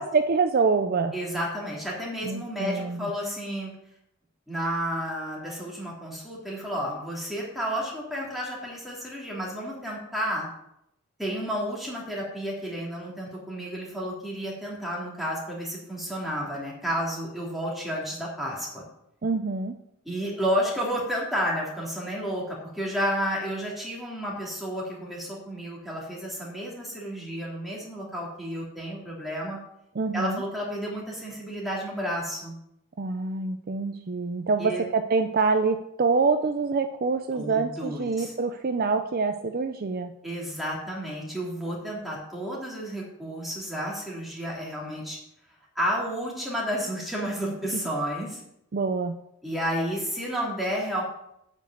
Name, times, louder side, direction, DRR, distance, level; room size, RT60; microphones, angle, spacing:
voice 1, 0.0-1.1 2.2-3.1 19.2-19.8 29.9-30.4 33.0-40.1 47.7-47.8 48.7-49.1, right 4 dB, 45° right, 8 dB, 0.5 m, -26 dB
voice 2, 1.1-3.7 4.5-10.5 11.2-18.8 20.0-29.6 30.1-32.5 34.6-34.8 37.3-38.3 40.2-45.2 45.7-48.4 49.4-51.0, equal, ahead, -4 dB, 3.0 m, -31 dB
9.1 x 5.3 x 7.9 m, 0.80 s
head